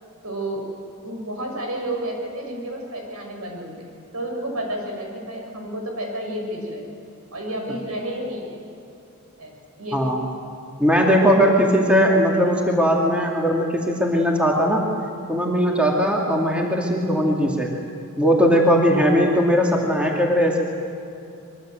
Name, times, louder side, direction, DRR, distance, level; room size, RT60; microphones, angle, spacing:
voice 1, 0.2-0.6 1.0-7.0 7.3-8.6 9.4-10.0, right 1 dB, 80° right, 1 dB, 6.7 m, -31 dB
voice 2, 10.8-14.9 15.3-17.7 18.2-20.6, equal, 5° right, -1 dB, 2.8 m, -19 dB
26.0 x 23.0 x 7.8 m, 2.7 s
head